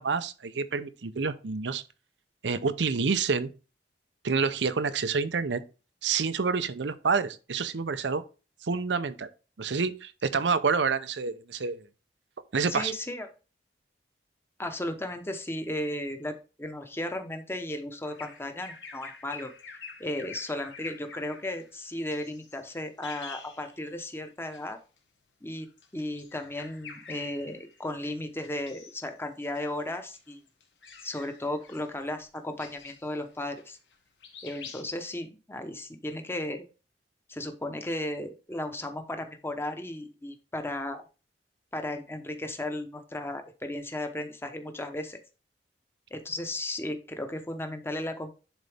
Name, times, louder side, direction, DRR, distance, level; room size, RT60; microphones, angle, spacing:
voice 1, 0.0-1.8 2.4-3.5 4.2-5.6 6.0-8.2 8.6-9.3 9.6-11.8 12.5-12.9, right 5 dB, 85° right, 0.7 m, -28 dB
voice 2, 12.7-13.3 14.6-19.5 20.0-24.8 25.4-25.7 25.9-30.4 31.0-33.8 34.4-36.6 37.3-41.0 41.7-45.2 46.1-48.3, left 1 dB, 15° left, 0.9 m, -35 dB
Bird vocalization bird call bird song, 18.0-24.1 24.4-24.6 25.7-28.0 28.4-29.1 29.4-34.0 34.2-34.8, left 5 dB, 85° left, 1.4 m, -47 dB
10.5 x 4.0 x 3.5 m
head